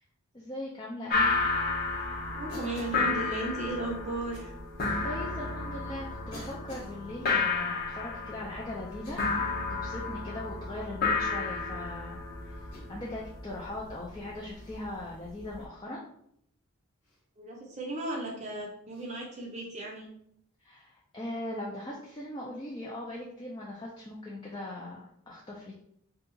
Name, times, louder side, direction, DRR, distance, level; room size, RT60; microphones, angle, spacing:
voice 1, 0.3-1.4 4.8-9.2 9.8-16.0 20.6-25.7, left 1 dB, 20° left, -4 dB, 0.3 m, -40 dB
sound 1, 1.1-15.6, left 4 dB, 45° left, 0.7 m, -32 dB
voice 2, 2.3-4.5 17.4-20.1, right 2 dB, 30° right, -1 dB, 0.6 m, -35 dB
Cough, 2.5-3.1 4.3-4.5 5.4-5.5 6.3-7.0 8.9-9.5 10.0-10.2 11.3-11.7 12.7-13.1 14.5-14.8 17.0-17.2 18.9-19.1, equal, 85° left, 0.9 m, -49 dB
2.7 x 2.3 x 3.7 m, 0.71 s
head